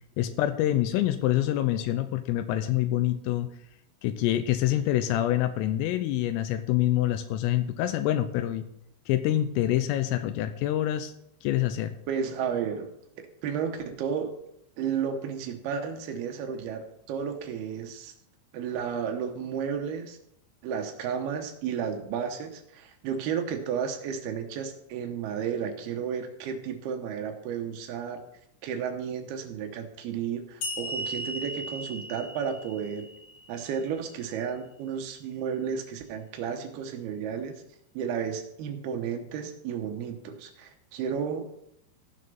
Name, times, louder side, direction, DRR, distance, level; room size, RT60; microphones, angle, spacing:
voice 1, 0.2-3.5 4.0-8.6 9.1-11.1 11.4-11.9, left 13 dB, 85° left, 9 dB, 3.3 m, -26 dB
voice 2, 12.1-14.4 14.8-18.1 18.5-20.2 20.6-28.2 28.6-33.1 33.5-37.6 37.9-41.5, right 7 dB, 80° right, 5 dB, 2.3 m, -33 dB
sound 1, 30.6-34.0, equal, 60° left, 1.8 m, -37 dB
15.5 x 6.6 x 5.4 m, 0.76 s
omnidirectional pair, 5.9 m